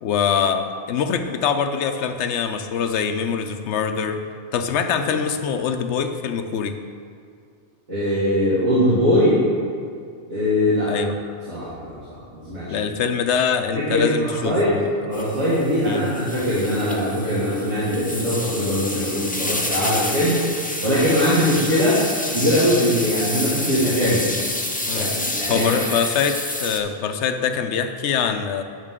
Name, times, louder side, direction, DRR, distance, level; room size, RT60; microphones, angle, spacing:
voice 1, 0.0-4.2 4.5-6.8 10.9-11.2 12.7-14.9 15.8-16.1 24.9-25.1 25.5-28.6, left 6 dB, 80° left, 7 dB, 0.9 m, -24 dB
voice 2, 7.9-9.4 10.3-10.9 11.5-12.8 13.7-14.7 15.0-20.4 20.8-22.0 22.3-24.2 24.9-26.0, equal, 80° right, -11 dB, 2.1 m, -21 dB
sound 1, 15.1-26.8, left 1 dB, 15° left, 0.3 m, -29 dB
10.5 x 6.5 x 3.6 m, 2.3 s
omnidirectional pair, 1.2 m